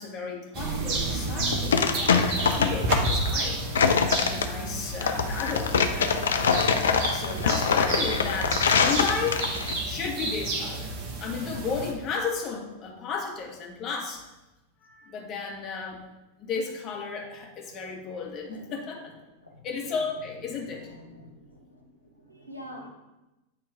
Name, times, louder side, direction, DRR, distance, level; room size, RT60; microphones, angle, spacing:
voice 1, 0.0-6.1 6.5-6.7 7.1-9.5 9.8-14.2 14.8-16.0 16.4-19.2 19.6-20.9, left 5 dB, 35° left, 0 dB, 1.3 m, -34 dB
sound 1, 0.5-11.9, right 2 dB, 40° right, 1.1 m, -31 dB
sound 2, 1.2-9.8, left 6 dB, 65° left, 0.5 m, -24 dB
voice 2, 20.6-21.8 22.2-22.9, equal, 90° right, 0 dB, 1.1 m, -46 dB
8.5 x 3.0 x 4.6 m, 1.0 s
figure-of-eight pair, 90°, 0 cm